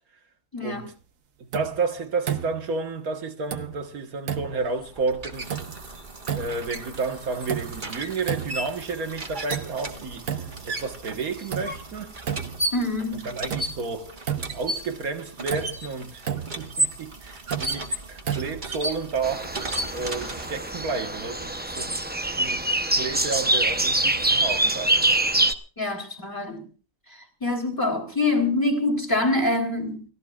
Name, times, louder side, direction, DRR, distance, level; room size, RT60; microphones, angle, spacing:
voice 1, 0.5-0.9 12.7-13.3 25.8-26.6 27.1-30.1, left 2 dB, 15° left, 3.4 m, -25 dB
sound 1, 1.5-1.9 2.3-2.8 3.5-3.9 4.3-4.7 5.5-5.9 6.3-6.7 7.5-7.9 8.3-8.8 9.5-10.0 10.3-10.7 11.5-11.9 12.3-12.8 13.5-13.9 14.2-14.8 15.5-15.8 16.2-16.7 17.5-17.9 18.2-18.8, right 8 dB, 70° right, 1.4 m, -32 dB
voice 2, 1.5-5.5 6.3-10.3 10.6-12.1 13.2-14.1 14.5-21.9 22.4-25.0, right 4 dB, 85° right, 2.0 m, -31 dB
sound 2, 4.5-20.8, right 1 dB, 35° right, 1.7 m, -34 dB
sound 3, 19.2-25.5, right 1 dB, 10° right, 0.5 m, -24 dB
29.5 x 15.0 x 2.4 m
omnidirectional pair, 1.5 m